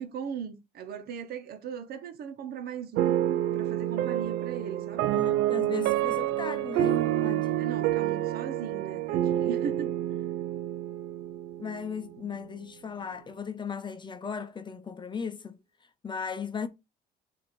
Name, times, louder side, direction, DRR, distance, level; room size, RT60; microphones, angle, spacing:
voice 1, 0.0-3.2 3.5-5.1 7.6-9.9, right 7 dB, 65° right, 1.3 m, -38 dB
sound 1, 3.0-12.1, right 12 dB, 85° right, 0.5 m, -28 dB
voice 2, 5.1-7.7 11.6-15.6 16.0-16.7, left 6 dB, 25° left, 0.8 m, -37 dB
7.6 x 2.9 x 4.2 m
cardioid pair, 110°, 17 cm